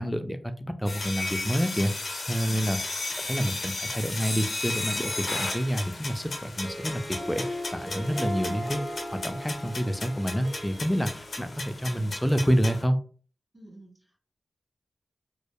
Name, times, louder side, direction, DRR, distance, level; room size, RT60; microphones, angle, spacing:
voice 1, 0.0-2.8 3.2-8.8 9.2-13.0, equal, 5° left, 8 dB, 0.3 m, -28 dB
sound 1, 0.9-12.8, left 2 dB, 60° left, 0.6 m, -35 dB
Harp, 6.4-11.9, equal, 25° left, 0.9 m, -38 dB
voice 2, 13.5-14.2, right 1 dB, 15° right, -8 dB, 1.3 m, -50 dB
2.7 x 2.1 x 2.2 m, 0.41 s
cardioid pair, 60°, 0 cm